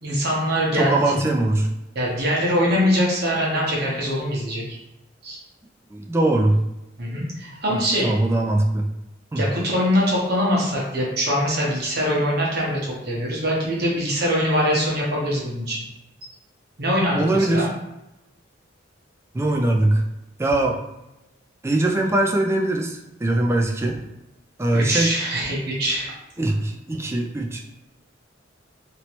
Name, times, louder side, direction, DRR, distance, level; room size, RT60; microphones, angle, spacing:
voice 1, 0.0-1.2 1.9-4.8 5.2-5.4 7.0-8.1 9.4-15.8 16.8-17.7 24.7-26.1, equal, 55° right, -3 dB, 1.0 m, -23 dB
voice 2, 0.7-1.7 5.9-6.6 7.7-7.8 8.0-8.9 9.3-9.4 17.2-17.7 19.3-20.0 20.4-20.8 21.6-24.0 24.6-25.1 26.4-27.6, right 2 dB, 15° right, 1 dB, 0.3 m, -21 dB
3.0 x 2.9 x 3.0 m, 0.92 s
head